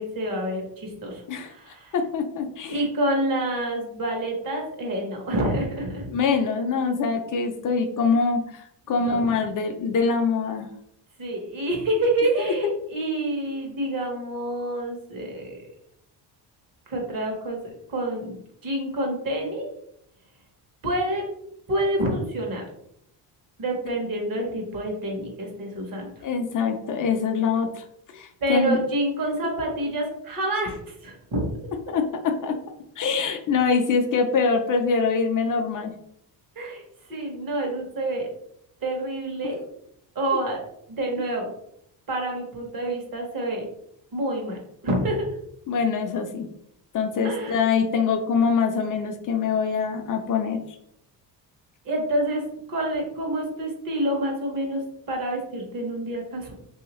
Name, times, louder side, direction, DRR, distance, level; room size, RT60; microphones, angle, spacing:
voice 1, 0.0-1.9 2.7-6.1 8.9-9.2 11.2-15.6 16.9-17.6 17.9-18.4 18.6-19.7 20.8-21.2 21.7-22.6 23.6-26.1 28.4-31.4 36.6-36.8 37.1-38.3 38.8-39.6 40.1-40.6 40.9-41.5 42.1-43.6 44.1-45.3 47.2-47.6 51.8-56.5, right 1 dB, 50° right, 1 dB, 1.2 m, -27 dB
voice 2, 1.9-2.8 6.1-10.7 12.6-12.7 26.2-27.8 28.1-28.8 31.9-32.6 33.0-35.9 45.7-46.5 46.9-50.8, left 5 dB, 50° left, 5 dB, 0.4 m, -24 dB
3.3 x 2.7 x 3.0 m, 0.72 s
cardioid pair, 140°, 43 cm